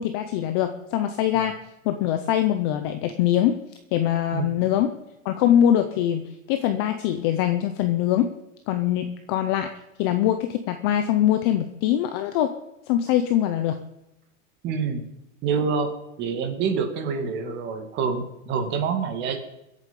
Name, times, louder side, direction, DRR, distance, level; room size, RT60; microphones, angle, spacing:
voice 1, 0.0-1.6 1.8-3.6 3.9-5.0 5.2-8.3 8.7-9.7 10.0-12.6 12.9-13.8, left 11 dB, 20° left, 8 dB, 0.4 m, -23 dB
voice 2, 4.3-4.7 14.6-15.0 15.4-15.9 16.2-19.4, right 5 dB, 25° right, 6 dB, 2.1 m, -27 dB
22.5 x 8.3 x 5.3 m, 0.90 s
supercardioid pair, 165°, 39 cm